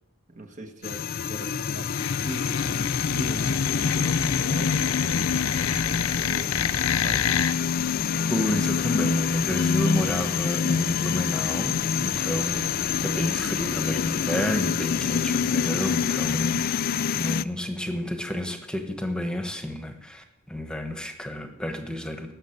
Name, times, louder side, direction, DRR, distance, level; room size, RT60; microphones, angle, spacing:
voice 1, 0.3-7.3, right 1 dB, 35° right, 4 dB, 1.3 m, -40 dB
sound 1, 0.8-17.4, left 6 dB, 45° left, 0.4 m, -26 dB
sound 2, 1.9-7.5, left 8 dB, 85° left, 0.7 m, -29 dB
voice 2, 8.3-16.6 17.2-22.3, equal, 5° left, 5 dB, 1.3 m, -30 dB
19.0 x 6.6 x 8.0 m, 0.88 s
head